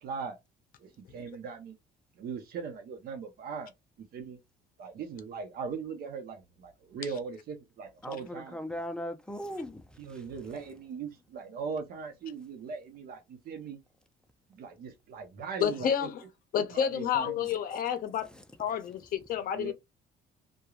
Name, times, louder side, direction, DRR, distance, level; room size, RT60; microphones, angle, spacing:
voice 1, 0.0-0.4 0.8-1.8 2.2-3.7 4.1-4.4 4.8-8.6 10.0-13.8 14.5-16.1 16.6-17.5 19.5-19.7, right 5 dB, 65° right, 0.8 m, -40 dB
voice 2, 8.0-10.2 17.1-17.3, left 1 dB, 5° left, 0.5 m, -39 dB
voice 3, 15.6-16.2 16.5-18.3 18.6-19.7, left 8 dB, 55° left, 0.6 m, -30 dB
2.9 x 2.3 x 2.4 m
cardioid pair, 110°, 17 cm